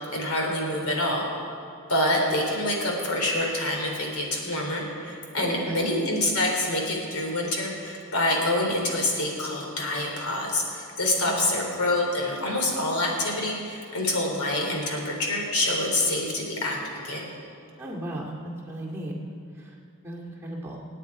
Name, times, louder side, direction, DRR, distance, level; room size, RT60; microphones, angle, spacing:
voice 1, 0.1-1.2 1.9-16.8 17.0-17.3, left 1 dB, 80° left, 0 dB, 3.5 m, -26 dB
voice 2, 5.3-5.7 11.2-11.4 17.8-18.3 18.7-19.1 19.6-19.7 20.0-20.8, right 1 dB, 10° right, -4 dB, 2.2 m, -36 dB
27.0 x 9.1 x 4.8 m, 2.4 s
head